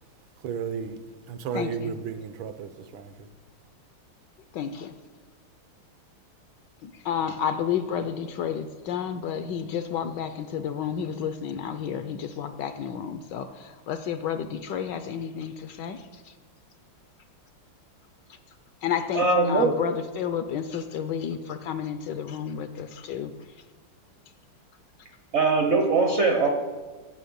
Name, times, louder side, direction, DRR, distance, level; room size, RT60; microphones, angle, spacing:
voice 1, 0.4-1.0 1.3-3.3, right 7 dB, 75° right, 10 dB, 1.5 m, -33 dB
voice 2, 1.5-2.0 4.6-4.9 6.8-16.3 18.3-18.4 18.8-23.6, left 8 dB, 70° left, 10 dB, 1.1 m, -31 dB
voice 3, 19.1-19.8 25.3-26.5, right 3 dB, 55° right, 4 dB, 0.8 m, -21 dB
9.1 x 6.5 x 8.5 m, 1.4 s
omnidirectional pair, 2.3 m